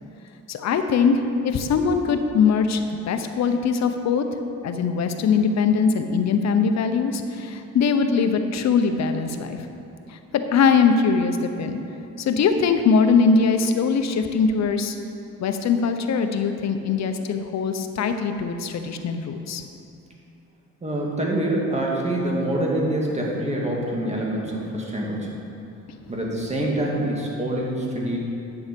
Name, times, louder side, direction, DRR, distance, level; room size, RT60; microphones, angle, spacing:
voice 1, 0.5-4.3 4.6-9.6 10.1-11.8 12.2-15.0 15.4-19.6, left 5 dB, 60° left, 7 dB, 0.8 m, -21 dB
voice 2, 20.8-25.3 26.1-28.2, right 1 dB, 20° right, -3 dB, 2.1 m, -25 dB
9.3 x 7.0 x 5.3 m, 2.8 s
cardioid pair, 90°, 30 cm